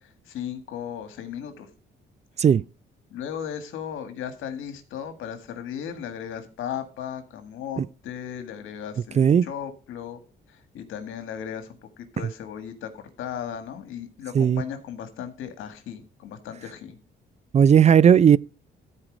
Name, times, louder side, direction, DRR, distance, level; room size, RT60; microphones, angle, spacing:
voice 1, 0.0-1.7 3.1-10.2 10.5-17.0, left 9 dB, 85° left, 1.7 m, -36 dB
voice 2, 9.2-9.5 14.3-14.6 17.5-18.4, right 8 dB, 35° right, 0.3 m, -16 dB
14.0 x 4.7 x 4.9 m
cardioid pair, 90°, 20 cm